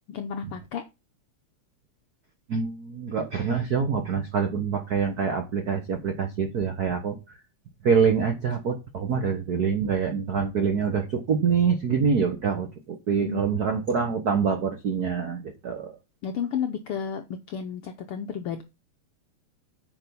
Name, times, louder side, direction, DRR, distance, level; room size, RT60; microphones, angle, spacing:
voice 1, 0.1-0.8 13.1-13.8 16.2-18.6, left 7 dB, 80° left, 6 dB, 1.2 m, -32 dB
voice 2, 2.5-7.2 7.8-16.0, right 6 dB, 75° right, 5 dB, 0.8 m, -25 dB
9.1 x 5.4 x 5.4 m, 0.27 s
omnidirectional pair, 3.3 m